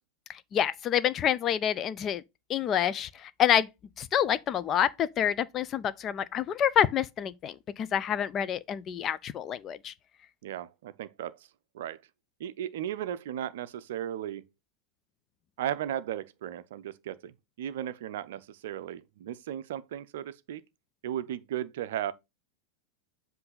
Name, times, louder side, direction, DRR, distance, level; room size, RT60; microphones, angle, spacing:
voice 1, 0.3-2.2 2.5-3.7 4.0-9.9, left 9 dB, 30° left, 0.4 m, -28 dB
voice 2, 10.4-11.4 11.7-12.0 12.4-14.4 15.6-20.6 21.0-22.1, right 11 dB, 55° right, 0.5 m, -36 dB
7.6 x 2.6 x 5.6 m
figure-of-eight pair, 90°, 0 cm